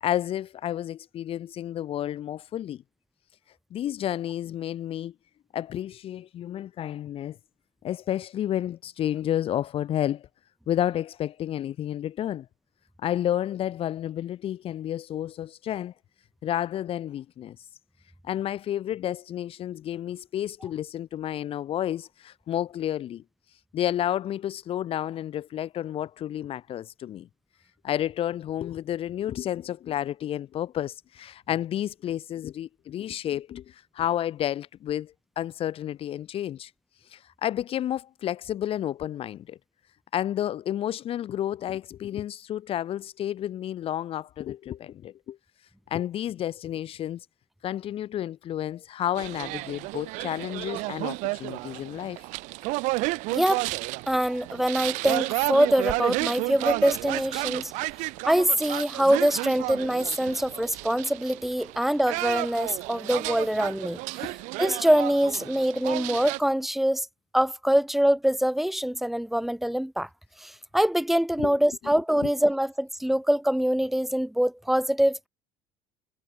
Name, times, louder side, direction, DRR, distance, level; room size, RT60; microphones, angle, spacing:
voice 1, 0.0-2.8 3.7-5.1 5.5-7.4 7.8-10.3 10.7-12.5 13.0-15.9 16.4-17.6 18.2-23.2 23.7-27.3 27.8-36.7 37.1-39.6 40.1-45.4 45.9-47.3 47.6-52.2 64.2-64.3 71.4-71.6 72.2-72.3, left 11 dB, 45° left, 1.1 m, -31 dB
sound 1, 49.1-66.4, right 24 dB, 70° right, 1.2 m, -32 dB
voice 2, 53.3-53.6 54.1-57.7 58.2-64.0 64.6-67.1 67.3-70.1 70.4-75.3, equal, ahead, 0.5 m, -24 dB
supercardioid pair, 100°, 13 cm